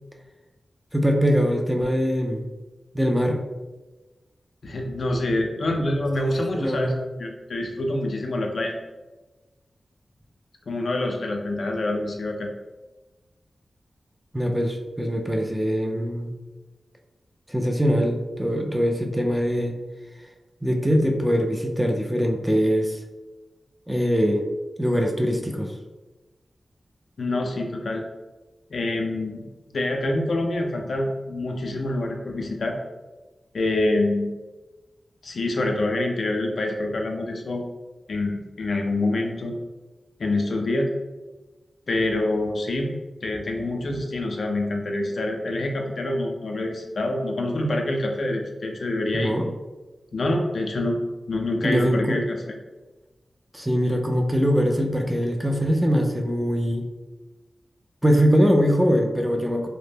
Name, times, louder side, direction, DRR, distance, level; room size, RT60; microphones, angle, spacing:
voice 1, 0.9-2.5 2.9-3.4 6.2-7.0 14.3-16.3 17.5-19.7 20.6-23.0 23.9-24.4 24.8-25.7 49.1-49.5 51.6-52.2 53.5-56.9 58.0-59.7, equal, 5° right, 2 dB, 0.4 m, -22 dB
voice 2, 4.6-6.9 7.2-8.7 10.7-12.5 27.2-28.0 28.7-29.5 29.7-32.8 33.5-34.3 35.2-37.6 38.1-39.6 40.2-40.9 41.9-42.9 43.2-49.3 50.1-51.0 51.3-52.4, left 2 dB, 75° left, 2 dB, 0.3 m, -26 dB
2.0 x 2.0 x 3.2 m, 1.2 s
cardioid pair, 50°, 0 cm